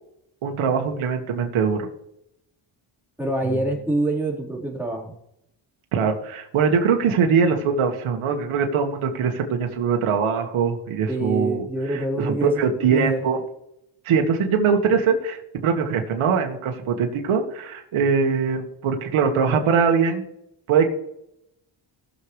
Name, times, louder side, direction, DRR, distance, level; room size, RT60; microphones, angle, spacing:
voice 1, 0.4-1.9 5.9-11.6 11.9-13.4 14.0-20.2 20.7-20.9, right 6 dB, 80° right, 3 dB, 1.7 m, -22 dB
voice 2, 3.2-5.1 11.1-13.2, right 2 dB, 5° right, -3 dB, 4.1 m, -26 dB
19.0 x 6.5 x 3.2 m, 0.80 s
cardioid pair, 85°, 50 cm